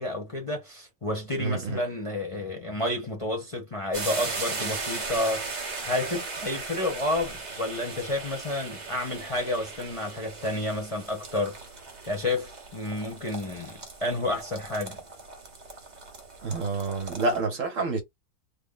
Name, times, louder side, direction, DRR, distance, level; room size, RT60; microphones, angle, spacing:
voice 1, 0.0-5.5 5.8-11.6 12.1-15.0, left 2 dB, 25° left, 1.0 m, -30 dB
voice 2, 1.4-1.8 16.4-18.0, right 3 dB, 55° right, 1.2 m, -28 dB
sound 1, 3.9-17.4, right 3 dB, 35° right, 0.8 m, -38 dB
3.5 x 2.2 x 3.8 m
omnidirectional pair, 1.7 m